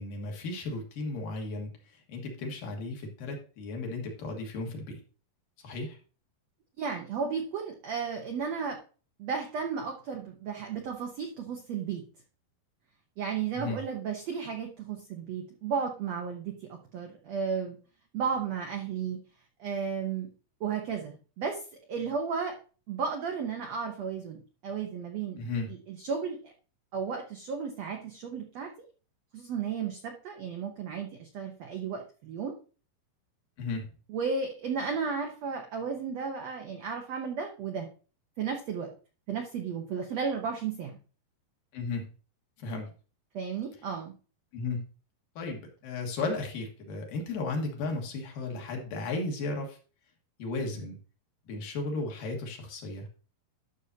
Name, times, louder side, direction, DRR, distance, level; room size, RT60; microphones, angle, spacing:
voice 1, 0.0-5.0 5.6-6.0 13.5-13.8 25.4-25.7 33.6-33.9 41.7-42.1 42.6-42.9 44.5-44.8 45.4-49.8 50.4-51.0 51.5-53.1, left 3 dB, 65° left, 1 dB, 3.1 m, -35 dB
voice 2, 6.8-8.8 9.2-12.0 13.2-17.8 18.1-19.2 19.6-20.3 20.6-21.6 21.9-22.6 22.9-25.4 25.7-26.4 26.9-28.7 29.3-32.6 34.1-37.9 38.4-38.9 39.3-41.0 43.3-44.1, right 6 dB, 85° right, 3 dB, 1.4 m, -34 dB
12.0 x 6.6 x 2.8 m, 0.37 s
omnidirectional pair, 4.5 m